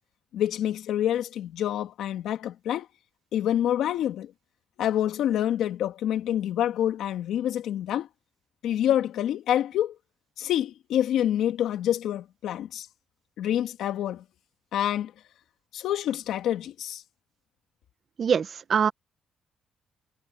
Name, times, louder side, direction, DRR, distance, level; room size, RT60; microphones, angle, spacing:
voice 1, 0.3-2.9 3.3-4.3 4.8-8.1 8.6-9.9 10.4-12.9 13.4-14.2 14.7-15.1 15.7-17.0, left 11 dB, 80° left, 2.3 m, -27 dB
voice 2, 18.2-18.9, right 7 dB, 50° right, 1.6 m, -23 dB
cardioid pair, 90°, 0 cm